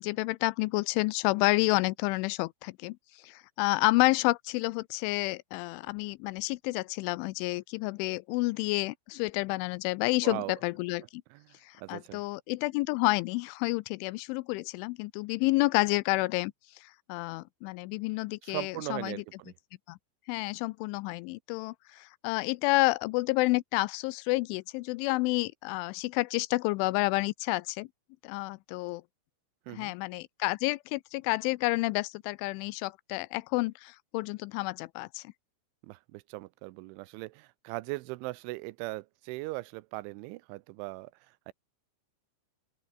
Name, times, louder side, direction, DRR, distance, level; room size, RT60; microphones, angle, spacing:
voice 1, 0.0-3.0 3.2-11.2 11.6-16.5 16.8-19.2 19.9-20.0 20.3-27.9 28.2-29.0 29.7-35.2, left 22 dB, 85° left, 3.0 m, -29 dB
voice 2, 10.2-10.5 11.3-12.2 18.4-19.5 29.7-29.9 35.8-41.5, right 21 dB, 85° right, 3.0 m, -39 dB
open air
omnidirectional pair, 5.5 m